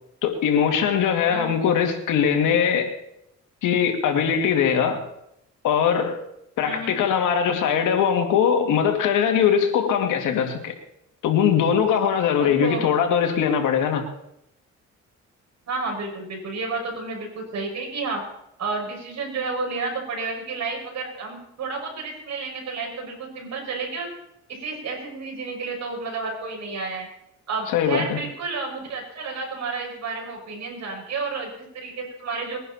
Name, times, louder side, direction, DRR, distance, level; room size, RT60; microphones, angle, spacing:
voice 1, 0.2-2.9 3.6-5.1 5.6-6.2 6.6-10.7 11.2-14.0 27.7-28.2, left 7 dB, 85° left, 2.3 m, -21 dB
voice 2, 1.3-1.6 6.6-7.0 12.4-12.9 15.7-18.2 18.6-24.1 24.5-27.1 27.5-32.6, right 3 dB, 60° right, 6.0 m, -31 dB
21.5 x 11.0 x 4.3 m
cardioid pair, 90°, 30 cm